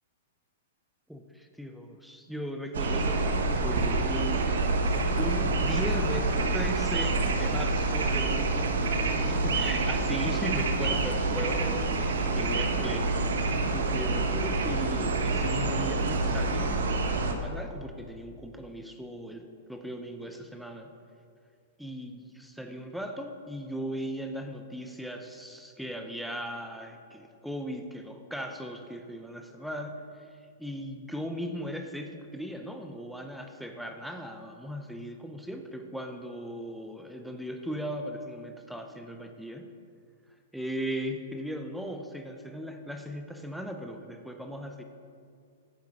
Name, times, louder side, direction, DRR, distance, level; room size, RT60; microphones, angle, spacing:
voice 1, 1.1-4.4 5.2-9.0 9.2-13.1 13.7-16.8 17.2-20.9 21.8-30.3 30.6-39.7 40.5-44.8, equal, ahead, 5 dB, 0.5 m, -38 dB
sound 1, 2.7-17.3, right 3 dB, 80° right, 1.1 m, -27 dB
9.1 x 5.8 x 6.4 m, 2.3 s
hypercardioid pair, 140°, 0 cm